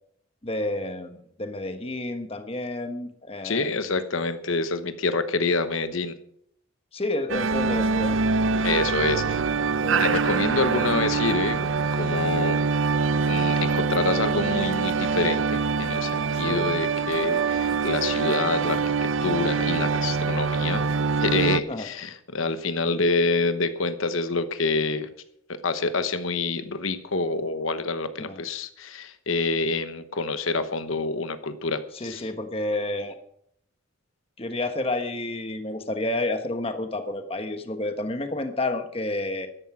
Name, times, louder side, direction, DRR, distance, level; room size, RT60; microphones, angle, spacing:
voice 1, 0.4-3.7 6.9-8.2 9.8-10.1 16.5-16.8 21.7-21.9 28.2-28.4 31.9-33.1 34.4-39.5, left 2 dB, 25° left, 7 dB, 1.3 m, -30 dB
voice 2, 3.4-6.1 8.6-9.4 10.0-12.6 13.3-18.8 19.2-20.8 21.2-25.1 25.5-32.3, left 3 dB, 75° left, 11 dB, 1.0 m, -27 dB
sound 1, 7.3-21.6, right 5 dB, 70° right, 0.6 m, -24 dB
13.5 x 11.5 x 6.1 m, 0.70 s
head